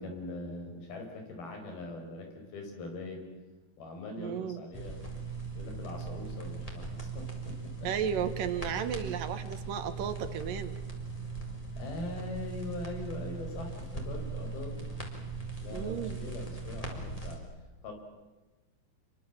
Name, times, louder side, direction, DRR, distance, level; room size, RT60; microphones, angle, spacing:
voice 1, 0.0-3.3 3.8-5.0 5.6-7.9 11.8-14.9 15.6-17.4 17.8-17.9, left 2 dB, 80° left, 4 dB, 7.0 m, -42 dB
voice 2, 4.2-4.6 7.8-10.7 15.7-16.2, right 8 dB, 70° right, 10 dB, 3.0 m, -34 dB
sound 1, 4.7-17.4, right 4 dB, 10° left, 4.2 m, -39 dB
28.0 x 23.5 x 7.4 m, 1.2 s
omnidirectional pair, 4.3 m